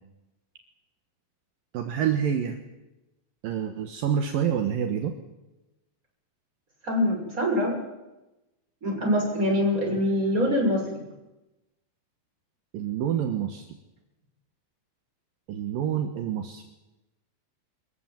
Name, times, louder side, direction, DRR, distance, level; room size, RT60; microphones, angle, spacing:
voice 1, 1.7-2.6 3.4-5.1 12.7-13.6 15.5-16.6, right 8 dB, 65° right, 6 dB, 2.4 m, -27 dB
voice 2, 6.8-7.8 8.8-11.0, left 1 dB, 15° right, 1 dB, 6.6 m, -24 dB
25.0 x 15.0 x 9.2 m, 0.99 s
omnidirectional pair, 5.7 m